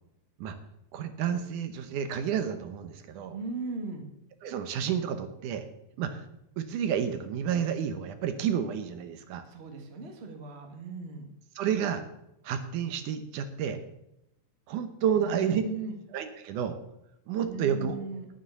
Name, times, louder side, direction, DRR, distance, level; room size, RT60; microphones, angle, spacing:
voice 1, 0.9-3.4 4.4-5.6 6.0-6.2 6.6-9.4 11.6-12.0 12.4-13.8 14.7-15.6 16.1-16.8 17.3-18.0, right 8 dB, 75° right, 9 dB, 2.4 m, -30 dB
voice 2, 3.3-4.0 9.4-11.3 15.1-16.0 17.4-18.3, right 3 dB, 30° right, 3 dB, 1.4 m, -37 dB
9.8 x 9.5 x 7.0 m, 0.84 s
omnidirectional pair, 3.8 m